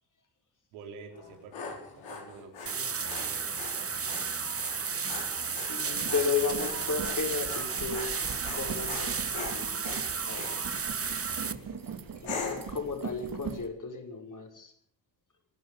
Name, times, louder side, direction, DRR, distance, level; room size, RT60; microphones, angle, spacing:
voice 1, 0.7-4.0, right 4 dB, 80° right, 3 dB, 4.3 m, -49 dB
Dog, 1.1-10.6 11.1-11.5 12.2-12.8, left 4 dB, 65° left, 6.6 m, -42 dB
sound 1, 2.7-11.5, right 6 dB, 30° right, 1.6 m, -33 dB
sound 2, 4.8-4.9 5.2-13.7, right 6 dB, 45° right, 3.2 m, -41 dB
voice 2, 5.7-8.1 8.6-10.6 12.2-14.7, left 5 dB, 40° left, 3 dB, 6.3 m, -34 dB
25.0 x 12.0 x 8.9 m, 0.69 s
hypercardioid pair, 45°, 48 cm